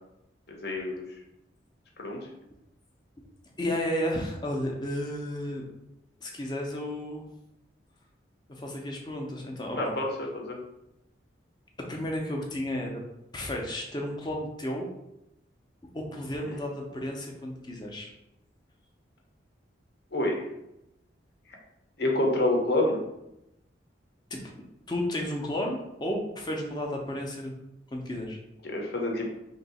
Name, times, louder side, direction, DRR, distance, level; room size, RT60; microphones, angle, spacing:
voice 1, 0.5-1.0 2.0-2.2 9.8-10.6 16.4-16.6 20.1-20.4 22.0-23.0 28.6-29.3, left 1 dB, 55° left, 0 dB, 0.8 m, -27 dB
voice 2, 3.6-5.7 6.2-7.2 8.5-9.9 11.9-12.9 13.3-14.9 15.9-18.1 24.3-24.4 24.9-27.5 27.9-28.4, left 1 dB, 25° left, 0 dB, 0.5 m, -32 dB
3.0 x 2.7 x 4.1 m, 0.87 s
head